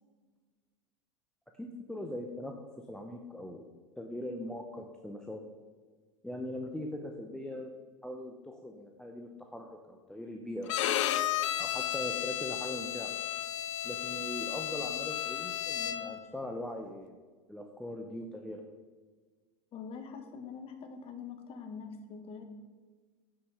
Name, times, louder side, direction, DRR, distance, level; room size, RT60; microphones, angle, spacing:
voice 1, 1.6-2.6 2.9-5.4 6.2-7.7 8.0-10.7 11.6-13.1 13.8-17.1 17.5-18.7, left 1 dB, 5° left, 2 dB, 0.7 m, -41 dB
Bowed string instrument, 10.7-16.2, left 12 dB, 80° left, 0.6 m, -33 dB
voice 2, 19.7-22.4, left 5 dB, 35° left, 6 dB, 1.4 m, -44 dB
9.7 x 5.8 x 4.9 m, 1.5 s
supercardioid pair, 110°, 16 cm